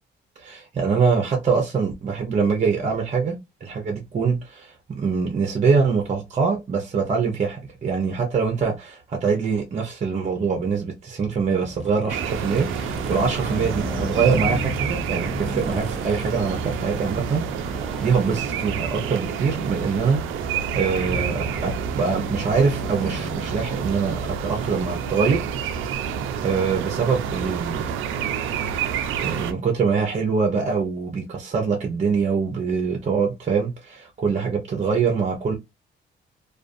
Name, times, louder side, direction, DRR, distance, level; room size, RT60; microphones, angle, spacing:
voice 1, 0.4-3.4 3.6-20.4 20.7-25.5 25.7-25.8 26.4-27.9 29.2-35.5, right 5 dB, 35° right, 0.7 m, -24 dB
sound 1, 11.4-26.5, equal, ahead, 0.7 m, -35 dB
sound 2, 12.1-29.5, right 7 dB, 85° right, 0.4 m, -29 dB
2.4 x 2.4 x 2.5 m
cardioid pair, 90°, 20 cm